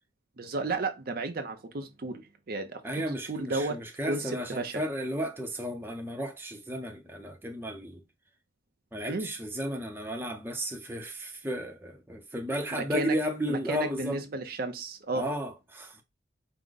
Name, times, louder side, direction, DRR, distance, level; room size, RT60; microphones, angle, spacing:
voice 1, 0.4-3.8 4.0-4.8 9.1-9.3 12.7-13.2 13.5-15.3, right 3 dB, 50° right, 0.6 m, -33 dB
voice 2, 2.8-8.0 8.9-14.2 15.1-16.0, equal, 10° right, 0.6 m, -34 dB
4.7 x 2.1 x 3.8 m
head